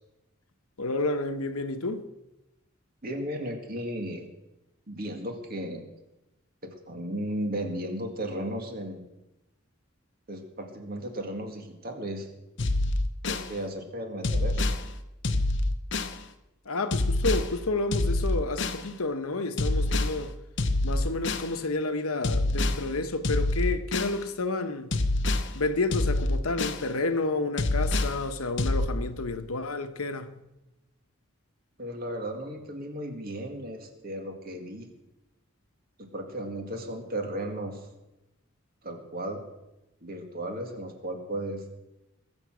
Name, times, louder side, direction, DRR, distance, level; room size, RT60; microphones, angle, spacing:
voice 1, 0.8-2.0 16.7-20.3 20.8-24.9 25.5-30.3, left 3 dB, 90° left, 1.1 m, -30 dB
voice 2, 3.0-4.3 4.9-5.8 6.6-9.1 10.3-12.3 13.2-14.7 31.8-34.9 36.0-37.9 38.8-39.4 40.0-41.6, right 1 dB, 45° right, 2.1 m, -35 dB
sound 1, 12.6-13.5 14.2-14.8 15.2-16.2 16.9-17.5 17.9-18.8 19.6-20.2 20.6-21.5 22.2-22.8 23.2-24.2 24.9-25.5 25.9-26.8 27.6-28.2 28.6-28.9, left 2 dB, 55° left, 0.9 m, -26 dB
21.5 x 7.2 x 6.2 m
head